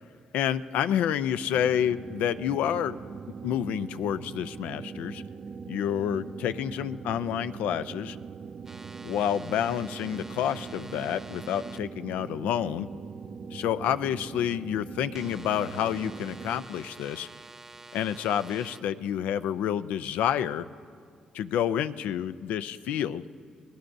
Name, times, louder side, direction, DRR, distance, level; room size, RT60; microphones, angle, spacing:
voice 1, 0.3-3.0 3.4-5.2 5.7-8.2 9.0-12.9 13.5-17.3 17.9-20.7 21.3-23.2, left 10 dB, 85° left, 13 dB, 0.5 m, -29 dB
sound 1, 1.5-16.7, right 6 dB, 45° right, 0.4 m, -41 dB
sound 2, 8.6-11.8 15.1-18.8, right 2 dB, 15° right, 0.8 m, -48 dB
28.0 x 19.5 x 2.6 m, 2.2 s
cardioid pair, 90°, 2 cm